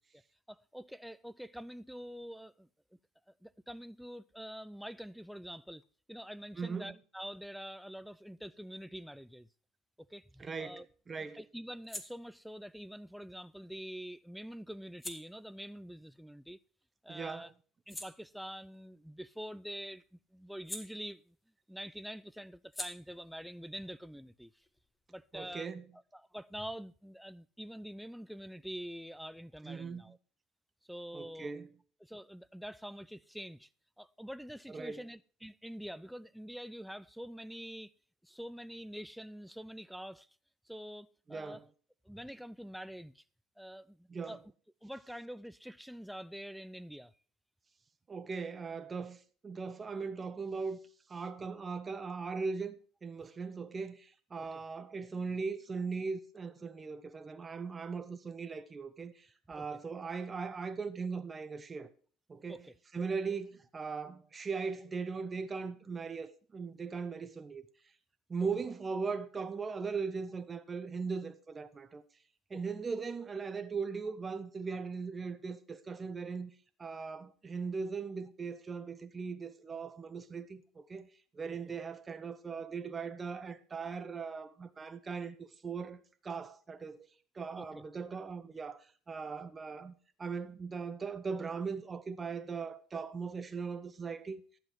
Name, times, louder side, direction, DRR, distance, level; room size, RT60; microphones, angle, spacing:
voice 1, 0.5-2.7 3.3-5.8 6.1-9.5 10.0-10.8 11.2-16.6 17.0-17.5 17.9-21.4 21.7-24.6 25.1-25.7 26.1-30.2 30.9-31.5 32.0-33.7 34.0-37.9 38.2-40.3 40.7-41.6 42.0-43.2 43.6-44.4 44.8-47.1 54.4-54.6 59.5-59.8 62.5-62.8 72.5-72.6 87.6-87.8, equal, ahead, 0.5 m, -46 dB
voice 2, 6.6-6.9 10.4-11.4 17.1-17.5 25.3-25.8 29.6-30.1 31.1-31.7 34.7-35.0 41.3-41.6 44.1-44.4 48.1-50.8 51.1-61.9 62.3-62.7 62.9-67.6 68.3-72.0 72.5-76.5 76.8-81.1 81.3-87.1 87.3-89.9 90.2-94.4, right 5 dB, 25° right, 0.9 m, -39 dB
sound 1, 10.1-17.0 17.4-21.6 21.9-25.3, left 1 dB, 15° left, 1.7 m, -51 dB
11.5 x 7.6 x 4.8 m
hypercardioid pair, 80°, 0 cm